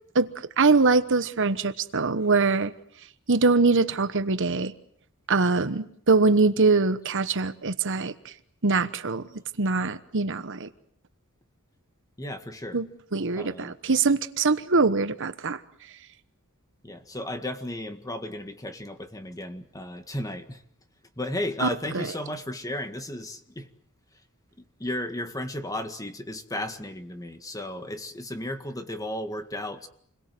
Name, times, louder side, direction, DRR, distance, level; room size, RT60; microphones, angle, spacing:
voice 1, 0.6-2.7 3.3-4.7 5.3-8.1 8.6-9.3 9.6-10.7 12.7-12.9 13.1-15.6 21.6-21.7 21.9-22.1, right 3 dB, 55° right, 12 dB, 1.2 m, -23 dB
voice 2, 12.2-12.8 13.3-13.8 16.8-20.6 21.2-23.7 24.6-29.9, left 1 dB, 15° left, 8 dB, 1.8 m, -34 dB
28.5 x 22.0 x 7.8 m, 0.64 s
head